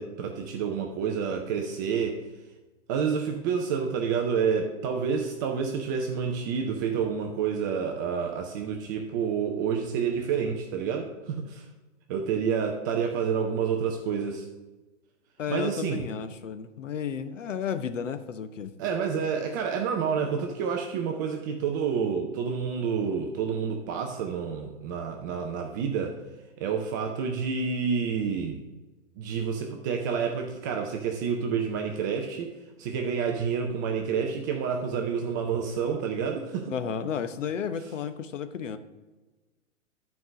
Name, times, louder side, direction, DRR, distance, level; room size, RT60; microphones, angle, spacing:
voice 1, 0.0-2.2 2.9-11.7 12.1-14.5 15.5-16.0 18.8-26.2 26.6-28.6 29.2-32.5 32.8-36.7, right 6 dB, 15° right, 2 dB, 0.4 m, -29 dB
voice 2, 15.4-18.7 36.7-38.8, left 7 dB, 85° left, 11 dB, 0.9 m, -32 dB
10.5 x 4.7 x 6.3 m, 1.2 s
hypercardioid pair, 140°, 37 cm